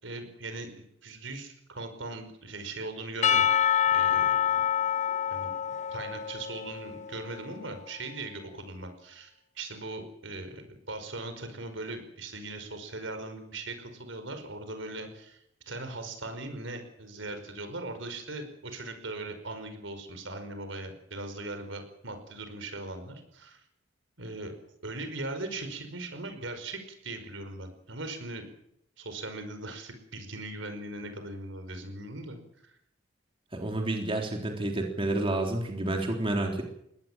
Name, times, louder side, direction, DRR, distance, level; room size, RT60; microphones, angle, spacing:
voice 1, 0.0-3.5 3.9-4.6 5.3-5.5 5.9-15.4 15.7-23.6 24.2-24.5 24.8-28.4 29.0-32.4 32.6-32.8, right 2 dB, 80° right, 8 dB, 5.3 m, -39 dB
Percussion / Church bell, 3.2-7.6, left 9 dB, 40° left, 0.8 m, -27 dB
voice 2, 33.5-36.6, right 2 dB, 30° right, 2 dB, 3.5 m, -29 dB
21.5 x 18.5 x 7.5 m, 0.75 s
head